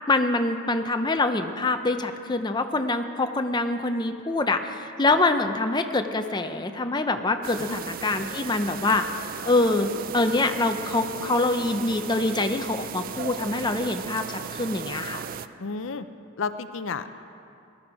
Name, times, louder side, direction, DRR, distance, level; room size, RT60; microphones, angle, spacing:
voice 1, 0.1-9.0 9.4-15.2, left 2 dB, 20° left, 6 dB, 0.6 m, -25 dB
sound 1, 7.4-15.5, right 7 dB, 40° right, 0.4 m, -36 dB
voice 2, 15.6-16.1 16.4-17.1, left 4 dB, 65° left, 11 dB, 0.5 m, -31 dB
20.0 x 12.5 x 4.8 m, 2.5 s
head